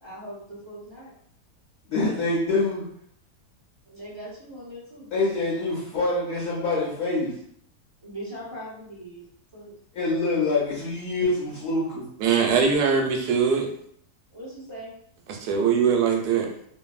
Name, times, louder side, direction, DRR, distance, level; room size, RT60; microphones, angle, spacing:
voice 1, 0.0-1.1 3.8-5.1 8.0-9.3 9.5-9.7 14.3-14.9, equal, 35° right, -8 dB, 0.4 m, -40 dB
voice 2, 1.9-2.8 5.1-7.3 9.9-12.1, left 2 dB, 70° left, -6 dB, 1.2 m, -25 dB
voice 3, 12.2-13.7 15.3-16.5, right 6 dB, 75° right, 1 dB, 1.1 m, -21 dB
2.7 x 2.6 x 2.3 m, 0.66 s
omnidirectional pair, 1.8 m